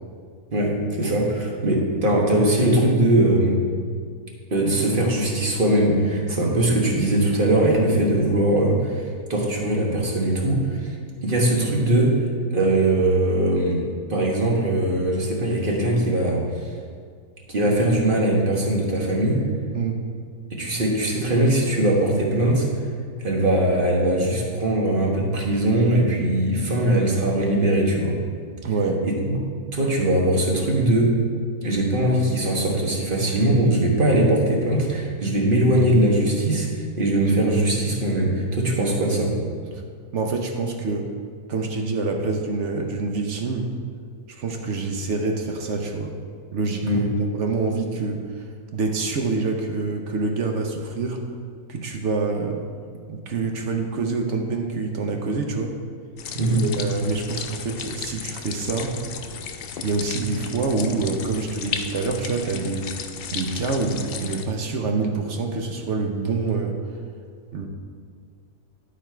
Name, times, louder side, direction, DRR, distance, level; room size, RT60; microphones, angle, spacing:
voice 1, 0.5-3.6 4.5-9.0 9.3-10.8 11.2-12.2 12.5-13.8 14.1-16.4 17.5-19.4 20.5-22.7 23.2-28.2 29.2-29.4 29.7-31.1 31.6-36.7 37.0-39.3 46.8-47.1 56.3-56.6, right 1 dB, 35° right, -2 dB, 1.3 m, -21 dB
voice 2, 28.6-29.0 39.7-39.8 40.1-41.1 41.5-43.7 44.3-46.1 46.5-51.2 51.7-52.6 53.1-55.7 56.5-58.9 59.8-62.9 63.3-66.8 67.5-67.7, right 3 dB, 60° right, 3 dB, 1.0 m, -26 dB
sound 1, 56.2-64.4, left 7 dB, 75° left, 0.5 m, -34 dB
11.0 x 4.8 x 4.5 m, 2.1 s
omnidirectional pair, 1.6 m